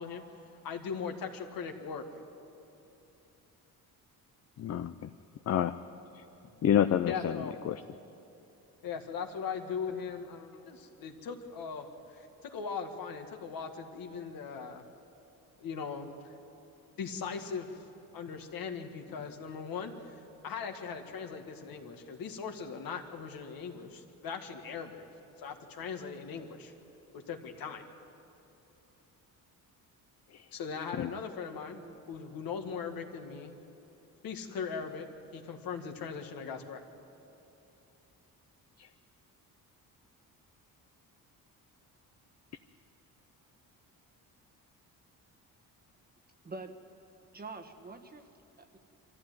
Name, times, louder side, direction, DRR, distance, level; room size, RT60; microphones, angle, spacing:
voice 1, 0.0-2.0 7.0-7.6 8.8-14.9 15.6-16.3 17.0-17.9 18.1-25.1 25.4-26.7 27.1-27.9 30.5-31.8 32.1-33.6 34.2-36.8, left 6 dB, 70° left, 4 dB, 1.9 m, -39 dB
voice 2, 4.6-5.1 5.5-5.8 6.6-7.8 30.3-30.4 31.0-31.1 38.8-38.9, left 10 dB, 45° left, 9 dB, 0.6 m, -29 dB
voice 3, 31.7-32.5 46.4-46.7 47.3-48.3 48.6-48.8, right 3 dB, 25° right, 6 dB, 1.3 m, -46 dB
24.0 x 15.0 x 9.3 m, 3.0 s
cardioid pair, 140°, 36 cm